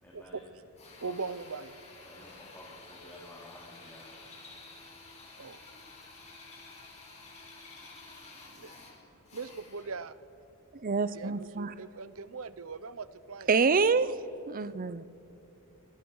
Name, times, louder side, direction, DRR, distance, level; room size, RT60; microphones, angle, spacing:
voice 1, 0.0-0.4 1.0-1.1 2.0-4.1, left 1 dB, 10° left, -6 dB, 3.5 m, -51 dB
Drill, 0.8-10.0, left 3 dB, 30° left, 5.1 m, -51 dB
voice 2, 1.0-1.8 5.4-5.6 8.5-8.8 9.3-10.2 11.1-14.1, right 4 dB, 70° right, 15 dB, 0.8 m, -40 dB
voice 3, 10.7-11.7 13.5-14.1 14.5-15.0, right 4 dB, 40° right, 16 dB, 0.6 m, -26 dB
27.0 x 25.0 x 4.7 m, 2.9 s
head